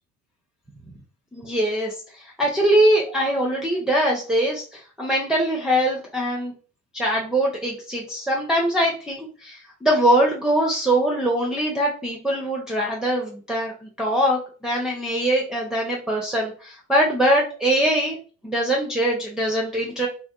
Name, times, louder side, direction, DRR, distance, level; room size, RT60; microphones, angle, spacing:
voice 1, 1.3-6.5 6.9-18.2 18.4-20.1, right 1 dB, ahead, -3 dB, 0.6 m, -22 dB
2.5 x 2.2 x 2.3 m, 0.37 s
hypercardioid pair, 60°, 41 cm